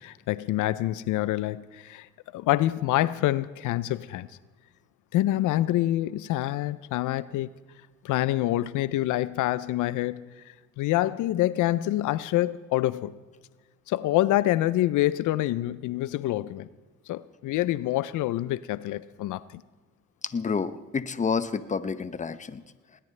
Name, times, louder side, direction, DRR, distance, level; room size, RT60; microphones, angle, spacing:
voice 1, 0.0-4.3 5.1-7.5 8.0-13.2 13.9-16.7 17.1-19.6, left 15 dB, 80° left, 0.5 m, -26 dB
voice 2, 20.3-22.6, left 5 dB, 25° left, 0.7 m, -29 dB
20.0 x 19.0 x 3.3 m
cardioid pair, 90°, 30 cm